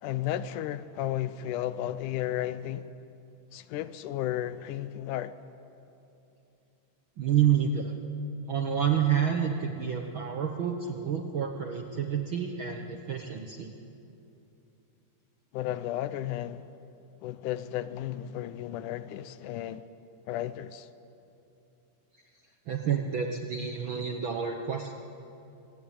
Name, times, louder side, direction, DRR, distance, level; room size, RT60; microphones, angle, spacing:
voice 1, 0.0-2.9 3.5-5.3 15.5-16.7 17.2-19.9 20.3-20.9, left 12 dB, 80° left, 2.2 m, -33 dB
voice 2, 7.2-7.9 8.5-13.7 22.7-24.9, right 8 dB, 65° right, 1.3 m, -29 dB
26.0 x 17.5 x 8.7 m
omnidirectional pair, 3.7 m